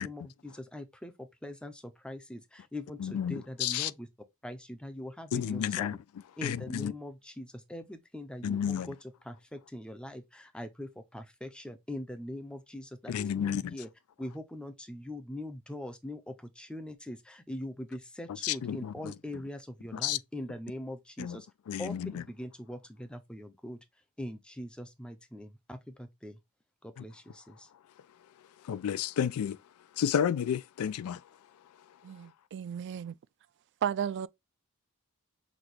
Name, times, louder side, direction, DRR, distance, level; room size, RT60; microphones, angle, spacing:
voice 1, 0.0-4.1 4.4-6.0 6.4-13.9 14.2-21.5 21.8-23.8 24.2-26.4 26.8-27.7, left 1 dB, 5° left, 0.5 m, -42 dB
voice 2, 3.0-3.9 5.3-6.0 6.4-6.9 8.4-8.9 13.1-13.8 18.4-19.1 19.9-20.2 21.2-21.4 21.7-22.1 28.6-29.6 30.0-31.2, left 9 dB, 75° left, 0.3 m, -31 dB
voice 3, 32.0-33.1 33.8-34.3, right 8 dB, 55° right, 0.3 m, -34 dB
5.9 x 2.3 x 3.2 m
head